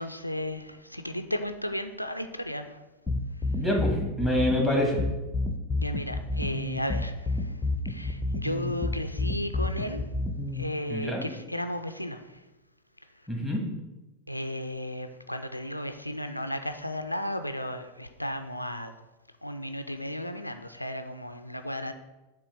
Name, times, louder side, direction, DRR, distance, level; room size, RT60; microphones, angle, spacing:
voice 1, 0.0-2.8 5.8-7.6 7.9-10.1 10.5-12.4 14.3-18.9 19.4-21.9, left 1 dB, 90° left, 8 dB, 0.4 m, -34 dB
sound 1, 3.1-10.6, left 2 dB, 15° left, 0.7 m, -29 dB
voice 2, 3.4-5.0 10.9-11.2 13.3-13.6, left 1 dB, 5° right, -1 dB, 1.9 m, -27 dB
7.0 x 3.1 x 5.8 m, 1.1 s
figure-of-eight pair, 90°, 0 cm